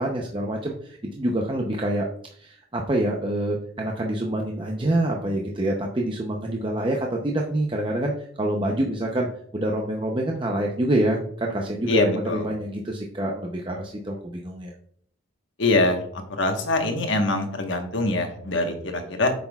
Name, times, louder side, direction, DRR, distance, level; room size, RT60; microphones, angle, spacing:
voice 1, 0.0-2.1 2.3-9.3 9.5-14.7, right 1 dB, 25° right, 0 dB, 0.6 m, -26 dB
voice 2, 11.9-12.5 15.6-19.3, left 2 dB, 70° left, 4 dB, 1.2 m, -24 dB
8.3 x 5.9 x 2.3 m, 0.62 s
head